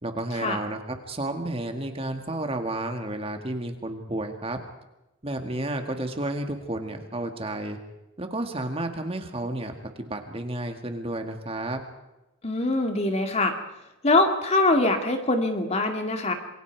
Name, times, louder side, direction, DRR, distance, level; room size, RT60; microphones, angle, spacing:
voice 1, 0.0-4.6 5.2-7.8 8.2-11.8, right 1 dB, 30° right, 5 dB, 2.0 m, -31 dB
voice 2, 12.4-13.5 14.0-16.3, left 2 dB, 35° left, 5 dB, 2.3 m, -23 dB
27.5 x 22.0 x 4.7 m, 0.95 s
head